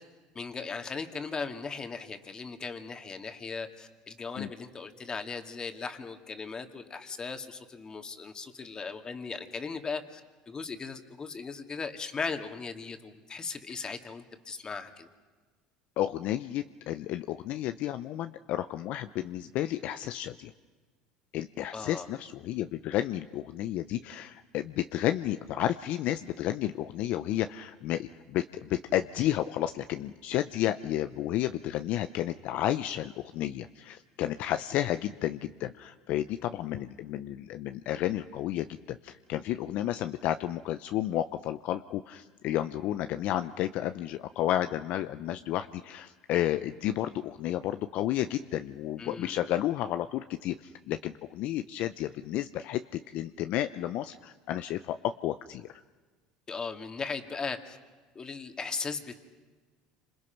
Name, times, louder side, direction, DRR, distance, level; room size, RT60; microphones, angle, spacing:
voice 1, 0.3-10.2 10.5-15.1 21.7-22.1 49.0-49.4 56.5-57.8 58.1-59.2, left 4 dB, 30° left, 6 dB, 2.4 m, -38 dB
voice 2, 16.0-20.5 21.3-52.8 53.1-55.7, left 13 dB, 65° left, 10 dB, 0.7 m, -32 dB
29.0 x 26.5 x 6.0 m, 1.4 s
supercardioid pair, 95°, 3 cm